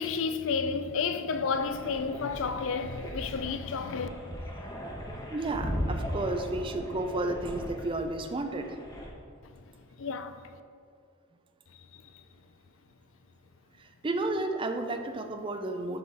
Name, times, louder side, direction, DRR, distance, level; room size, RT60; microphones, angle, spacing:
voice 1, 0.0-4.1 9.4-9.6 10.0-10.4 11.7-12.2, left 5 dB, 65° left, 0.4 m, -31 dB
sound 1, 1.5-9.1, equal, 20° left, 1.0 m, -38 dB
voice 2, 5.3-8.8 13.8-16.0, right 2 dB, 25° right, 0.4 m, -32 dB
11.0 x 3.8 x 4.1 m
head